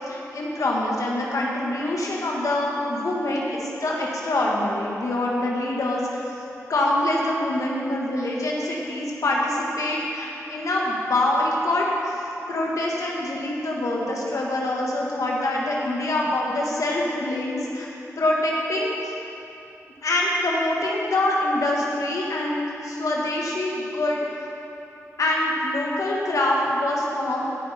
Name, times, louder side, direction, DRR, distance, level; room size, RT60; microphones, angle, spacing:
voice 1, 0.1-6.2 6.7-12.2 12.5-17.9 18.2-19.1 20.0-24.2 25.2-27.5, left 1 dB, 75° left, -3 dB, 1.7 m, -25 dB
16.5 x 5.7 x 5.7 m, 2.8 s
cardioid pair, 60°, 6 cm